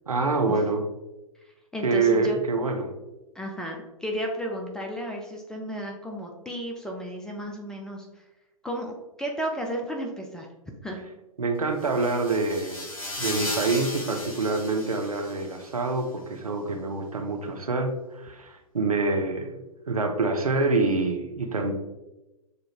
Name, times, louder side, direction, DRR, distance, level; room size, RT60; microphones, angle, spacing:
voice 1, 0.1-0.8 1.8-2.9 11.4-12.9 13.2-21.7, right 3 dB, 75° right, 4 dB, 0.7 m, -26 dB
voice 2, 1.7-2.4 3.4-8.1 8.6-10.5 10.8-11.0, equal, 5° left, 1 dB, 0.3 m, -33 dB
sound 1, 11.8-15.7, left 1 dB, 65° left, 1.4 m, -36 dB
6.6 x 2.4 x 2.9 m, 1.0 s
figure-of-eight pair, 110°, 18 cm